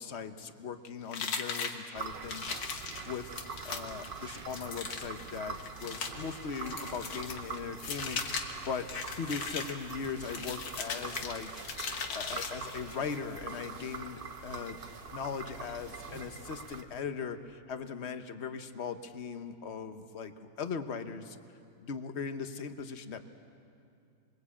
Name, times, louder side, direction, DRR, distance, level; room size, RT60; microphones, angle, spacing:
voice 1, 0.0-8.2 8.7-8.9 9.2-11.6 12.1-14.8 15.1-21.4 21.8-23.3, left 6 dB, 45° left, 9 dB, 1.1 m, -39 dB
sound 1, 1.1-13.0, left 5 dB, 90° left, 2.2 m, -39 dB
sound 2, 1.9-16.8, right 5 dB, 35° right, 1.0 m, -44 dB
26.5 x 22.0 x 8.5 m, 2.5 s
omnidirectional pair, 1.9 m